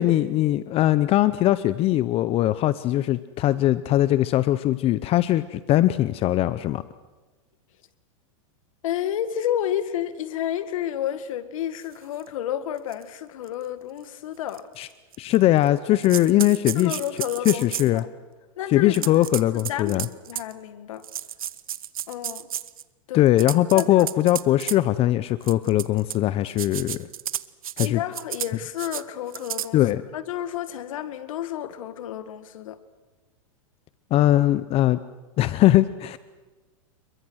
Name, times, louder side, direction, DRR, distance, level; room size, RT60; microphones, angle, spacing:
voice 1, 0.0-6.8 14.8-14.9 15.2-17.0 17.4-18.0 18.7-20.1 23.1-27.1 27.8-28.0 29.7-30.0 34.1-35.0 35.4-36.2, left 14 dB, 35° left, 15 dB, 0.8 m, -20 dB
voice 2, 8.8-14.7 16.8-17.7 17.9-18.1 18.6-20.0 20.2-21.1 22.1-22.5 23.1-23.3 23.7-24.1 27.8-29.8 30.1-32.8, left 10 dB, 70° left, 12 dB, 2.0 m, -31 dB
sound 1, 12.2-12.3 12.9-13.0 13.5-13.6 14.5-14.6 15.1-15.7 16.0-18.0 18.9-20.5 21.0-22.8 23.3-24.8 25.4-26.2 26.5-27.9 28.1-28.5 28.8-29.0 29.3-29.7, right 10 dB, 90° right, 1.0 m, -32 dB
28.5 x 22.5 x 6.4 m, 1.2 s
hypercardioid pair, 125°, 17 cm